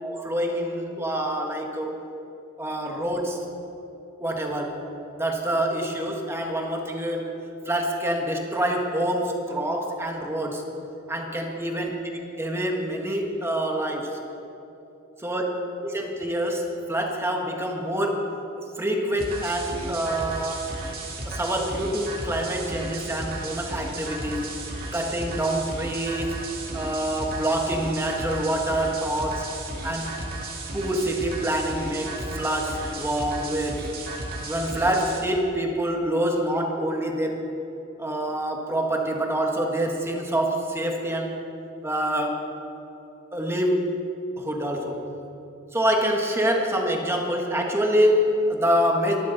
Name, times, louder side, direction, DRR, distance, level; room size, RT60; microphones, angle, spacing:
voice 1, 0.0-1.9 2.6-3.4 4.2-4.8 5.2-7.3 7.6-10.6 11.1-11.9 12.4-14.2 15.2-15.4 15.8-20.7 21.2-24.5 24.9-26.4 26.7-29.5 29.8-30.2 30.7-33.8 34.5-37.5 38.0-41.4 41.8-42.5 43.3-43.9 44.4-45.1 45.7-49.2, right 1 dB, 10° right, 1 dB, 1.5 m, -26 dB
sound 1, 19.2-35.2, right 2 dB, 45° right, 2.5 m, -34 dB
23.5 x 12.0 x 4.1 m, 2.9 s
head